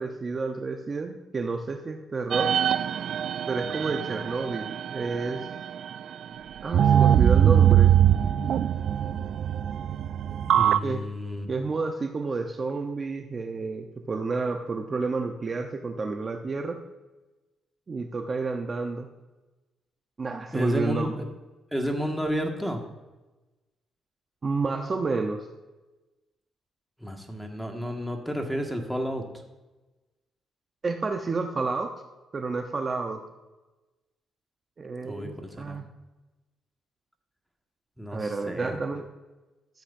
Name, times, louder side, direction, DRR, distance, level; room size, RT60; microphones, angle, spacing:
voice 1, 0.0-2.5 3.5-5.5 6.6-7.9 10.8-11.0 11.5-16.8 17.9-19.1 20.2-21.2 24.4-25.5 30.8-31.9 32.3-33.2 34.8-35.9 38.1-39.1, right 4 dB, 35° right, 4 dB, 0.9 m, -30 dB
sound 1, 2.3-6.0 6.7-10.8, right 10 dB, 65° right, 0.3 m, -22 dB
voice 2, 10.3-11.5 20.5-21.3 21.7-22.8 27.0-29.2 35.0-35.8 38.0-38.7, equal, ahead, 3 dB, 1.9 m, -31 dB
13.5 x 8.2 x 2.7 m, 1.1 s
cardioid pair, 80°, 0 cm